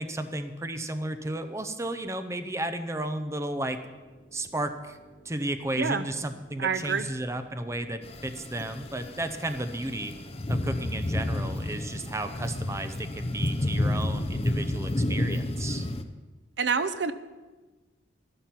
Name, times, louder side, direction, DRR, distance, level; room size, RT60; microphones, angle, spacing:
voice 1, 0.0-3.8 4.3-5.0 5.2-10.1 10.5-15.9, right 1 dB, 15° right, 8 dB, 0.6 m, -33 dB
sound 1, 3.3-14.4, right 1 dB, 70° left, 2.6 m, -53 dB
voice 2, 6.6-7.1 16.6-17.1, right 5 dB, 70° right, 12 dB, 0.6 m, -27 dB
sound 2, 8.0-16.0, left 1 dB, 30° left, 0.6 m, -30 dB
12.5 x 11.5 x 5.9 m, 1.3 s
head